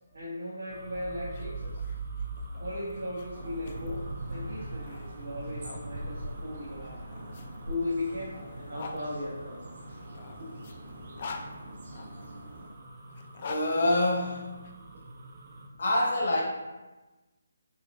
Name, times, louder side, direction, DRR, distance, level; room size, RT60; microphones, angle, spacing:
voice 1, 0.1-1.8 2.6-7.0 7.7-9.6 10.4-10.5 14.8-15.0, left 2 dB, 75° right, -9 dB, 1.1 m, -37 dB
sound 1, 0.7-15.7, right 3 dB, 40° right, 0.5 m, -43 dB
sound 2, 1.2-5.8 6.8-9.0 9.9-12.3 13.1-14.7, left 4 dB, 45° left, 0.4 m, -46 dB
sound 3, 3.3-12.7, equal, 60° right, 1.5 m, -44 dB
voice 2, 13.4-14.5 15.8-16.4, left 1 dB, 60° left, -2 dB, 1.1 m, -26 dB
6.4 x 2.4 x 2.3 m, 1.1 s
figure-of-eight pair, 155°, 0 cm